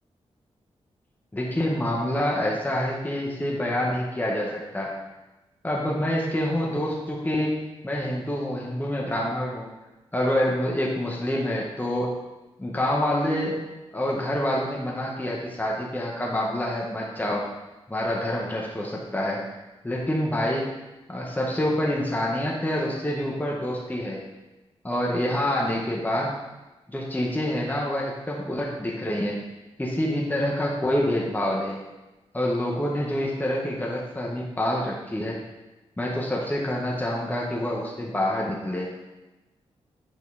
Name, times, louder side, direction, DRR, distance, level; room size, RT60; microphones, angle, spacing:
voice 1, 1.3-5.0 5.6-7.5 7.8-9.7 10.1-12.1 12.6-13.6 13.9-17.5 17.9-19.4 19.8-20.7 21.1-24.2 24.8-26.3 26.9-29.4 29.8-31.8 32.3-35.4 36.0-38.9, left 1 dB, 15° left, -3 dB, 1.4 m, -27 dB
8.6 x 4.3 x 4.1 m, 1.1 s
cardioid pair, 65°, 12 cm